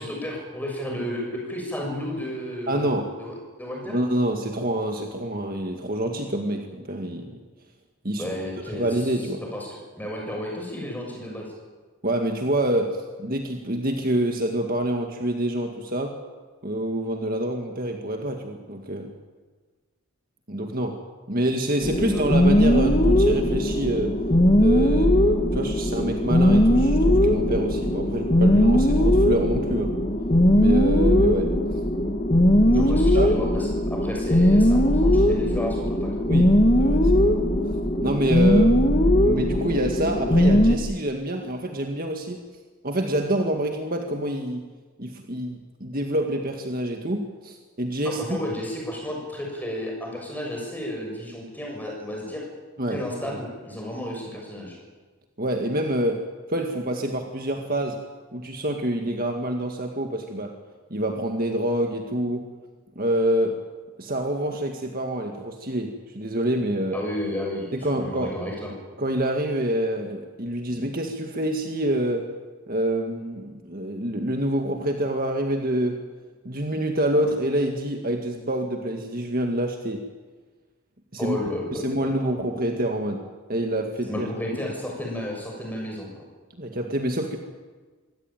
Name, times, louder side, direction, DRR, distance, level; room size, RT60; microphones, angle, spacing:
voice 1, 0.0-4.0 8.2-8.9 9.2-11.5 22.0-22.3 32.7-36.3 48.0-52.4 52.9-54.8 66.9-68.7 81.2-82.1 84.1-86.1, left 1 dB, 10° left, -1 dB, 7.0 m, -32 dB
voice 2, 2.7-3.1 3.9-7.4 8.0-8.3 8.7-9.4 12.0-16.2 16.6-19.1 20.5-21.0 21.3-24.1 24.6-25.1 25.5-29.9 30.6-31.8 32.6-33.3 36.3-36.5 36.8-37.3 38.0-42.4 42.8-44.6 45.0-48.2 52.8-53.4 55.4-56.2 56.5-58.0 58.3-60.5 60.9-62.5 63.0-63.6 64.0-66.9 67.7-68.3 69.0-72.3 72.7-76.0 76.5-80.0 81.1-81.4 81.7-83.2 83.5-84.3 86.6-87.4, right 1 dB, 40° right, 3 dB, 1.9 m, -26 dB
sound 1, 21.8-40.8, left 1 dB, 30° left, 1.7 m, -19 dB
25.0 x 17.0 x 9.0 m, 1.4 s
head